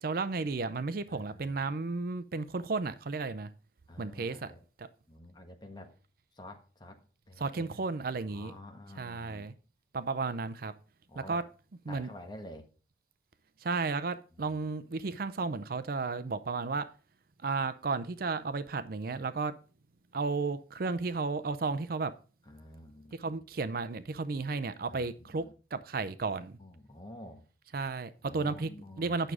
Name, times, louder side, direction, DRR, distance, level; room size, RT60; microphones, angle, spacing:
voice 1, 0.0-3.5 4.0-4.5 4.8-4.9 7.4-8.5 9.0-9.5 9.9-10.7 11.3-11.4 11.9-12.1 13.6-16.9 17.4-19.5 20.1-22.1 23.2-25.4 25.7-26.6 27.7-28.7 29.0-29.3, right 4 dB, 55° right, 0.5 m, -33 dB
voice 2, 1.1-1.6 3.9-4.6 5.1-5.9 6.4-7.0 7.3-7.8 8.3-9.5 11.1-11.4 11.9-12.7 14.3-14.6 22.4-23.4 24.9-25.5 26.3-27.4 28.2-29.2, left 1 dB, 25° left, 1.3 m, -49 dB
9.1 x 6.2 x 4.8 m
head